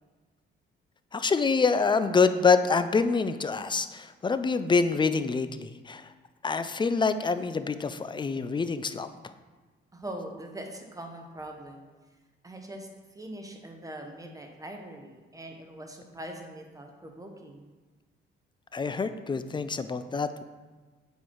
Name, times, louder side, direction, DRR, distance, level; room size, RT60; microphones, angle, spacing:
voice 1, 1.1-6.1 6.4-9.1 18.7-20.4, left 4 dB, 25° left, 11 dB, 0.4 m, -26 dB
voice 2, 9.9-11.9 12.4-12.9 13.1-17.7, right 1 dB, 15° right, 3 dB, 1.1 m, -42 dB
8.3 x 4.5 x 4.6 m, 1.3 s
cardioid pair, 90°, 20 cm